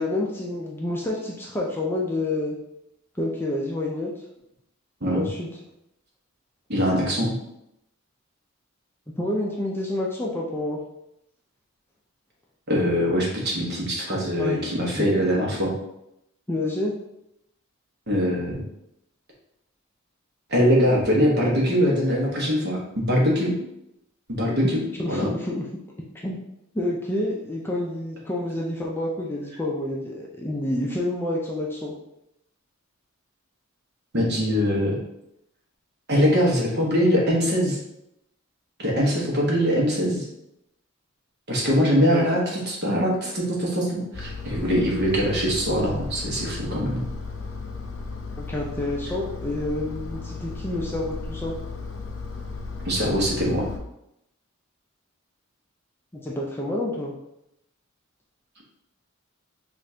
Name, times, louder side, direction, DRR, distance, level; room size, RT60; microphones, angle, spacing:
voice 1, 0.0-2.5 3.2-4.1 5.1-5.5 9.2-10.8 14.4-15.1 16.5-16.9 25.0-25.7 26.2-26.4 26.7-31.9 42.1-42.3 48.4-51.5 56.1-57.1, left 1 dB, 10° left, -3 dB, 0.4 m, -28 dB
voice 2, 6.7-7.4 12.7-15.7 18.1-18.6 20.5-23.6 24.3-24.8 25.1-25.3 34.1-35.0 36.1-37.8 38.8-40.3 41.5-47.1 52.8-53.6, equal, 50° right, -3 dB, 1.1 m, -22 dB
Engine, 44.1-53.8, left 4 dB, 60° left, 0.6 m, -35 dB
5.2 x 2.5 x 2.7 m, 0.83 s
head